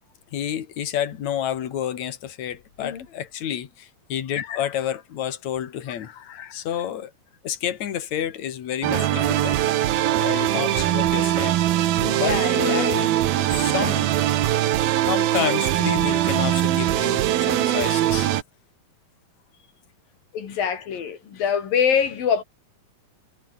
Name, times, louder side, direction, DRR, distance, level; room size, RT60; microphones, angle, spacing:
voice 1, 0.3-7.1 7.4-9.8 10.1-11.5 12.0-14.1 15.1-18.3, left 10 dB, 55° left, 3.1 m, -29 dB
sound 1, 8.8-18.4, right 13 dB, 85° right, 3.3 m, -21 dB
voice 2, 8.9-9.3 12.2-13.1 20.3-22.4, left 7 dB, 70° left, 4.8 m, -25 dB
omnidirectional pair, 4.2 m